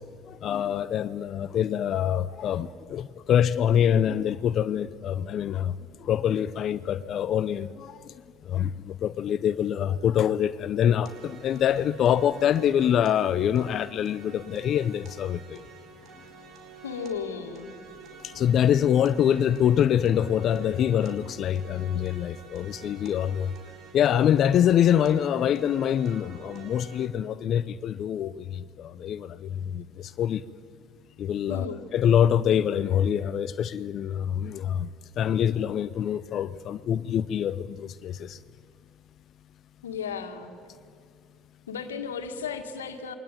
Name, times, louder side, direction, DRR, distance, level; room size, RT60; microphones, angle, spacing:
voice 1, 0.3-5.7 6.0-8.0 8.5-15.6 18.2-23.5 23.9-30.4 31.2-31.7 31.9-34.9 35.2-38.4, left 9 dB, 50° left, 0.7 m, -25 dB
sound 1, 11.1-27.1, right 5 dB, 55° right, 4.1 m, -48 dB
voice 2, 16.8-17.7 31.5-31.9 39.8-40.5 41.7-43.1, left 6 dB, 85° left, 2.0 m, -34 dB
28.0 x 22.5 x 9.1 m
hypercardioid pair, 60°, 0 cm